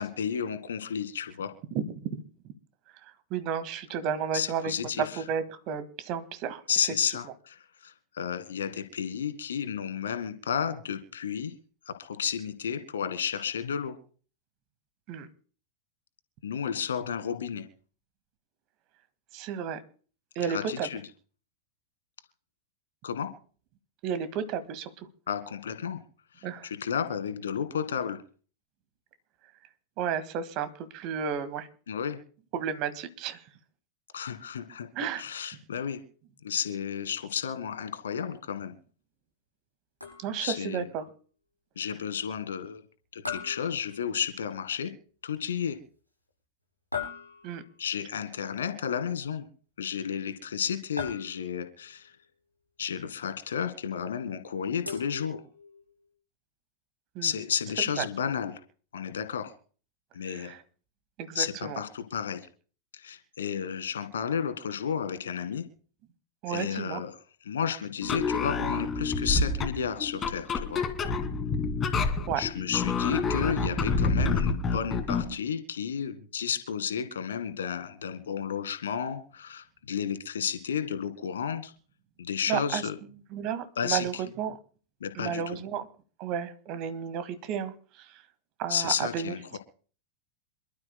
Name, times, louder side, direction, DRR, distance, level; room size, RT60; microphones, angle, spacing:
voice 1, 0.0-1.5 4.3-5.2 6.7-11.5 12.0-14.0 16.4-17.6 20.5-21.0 23.0-23.3 25.3-26.0 26.4-28.2 31.9-32.2 34.1-36.0 36.4-38.7 40.4-40.9 41.8-42.8 43.1-44.9 45.2-45.8 47.8-49.5 49.8-52.1 52.8-55.4 57.2-58.6 58.9-59.5 60.1-60.5 61.4-62.5 62.9-65.6 66.5-67.1 67.4-70.8 72.4-81.7 82.2-83.0 83.8-84.2 85.0-85.6 88.7-89.6, left 7 dB, 65° left, 10 dB, 1.9 m, -32 dB
voice 2, 3.3-4.7 5.2-6.6 15.1-15.3 19.3-19.8 20.4-20.9 24.0-24.9 26.4-26.7 30.0-31.7 32.5-33.4 35.0-35.2 40.2-41.1 47.4-47.6 57.2-57.3 58.0-58.1 60.3-60.6 61.2-61.8 66.4-67.0 72.3-72.4 82.5-82.8 83.3-84.6 85.2-85.9 86.2-88.1 88.6-89.6, right 8 dB, 40° right, 12 dB, 1.8 m, -32 dB
sound 1, 40.0-40.6 43.3-44.5 46.9-47.8 51.0-51.8 54.9-55.9, left 5 dB, 90° right, 6.9 m, -39 dB
sound 2, 68.0-75.3, left 4 dB, 20° left, 2.3 m, -28 dB
27.5 x 12.5 x 2.2 m, 0.41 s
figure-of-eight pair, 90°, 0 cm